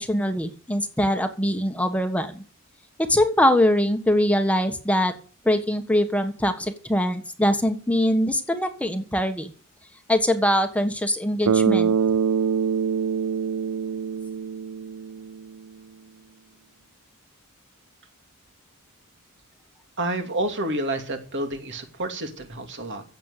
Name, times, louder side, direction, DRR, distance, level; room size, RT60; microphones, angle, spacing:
voice 1, 0.0-2.4 3.1-5.1 5.4-9.5 10.1-11.9, left 1 dB, 5° left, 6 dB, 1.4 m, -22 dB
Bass guitar, 11.5-15.5, right 6 dB, 75° right, 0.5 m, -24 dB
voice 2, 20.0-23.0, right 1 dB, 55° right, 5 dB, 2.8 m, -29 dB
15.5 x 7.8 x 6.7 m, 0.41 s
head